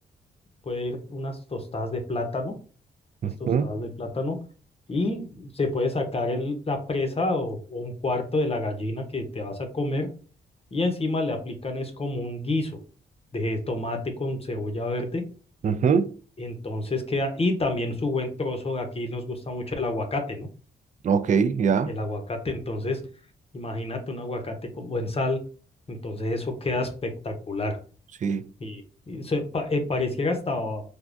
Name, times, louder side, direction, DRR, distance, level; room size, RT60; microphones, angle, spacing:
voice 1, 0.6-2.5 3.4-4.4 4.9-10.1 10.7-12.8 13.3-15.2 16.4-20.5 21.9-23.0 23.5-25.4 25.9-27.8 28.6-30.8, left 2 dB, 30° left, 0.8 m, -29 dB
voice 2, 3.2-3.7 15.6-16.2 21.0-21.9 28.2-28.5, right 6 dB, 45° right, 0.4 m, -23 dB
3.4 x 2.3 x 2.5 m
cardioid pair, 60°, 19 cm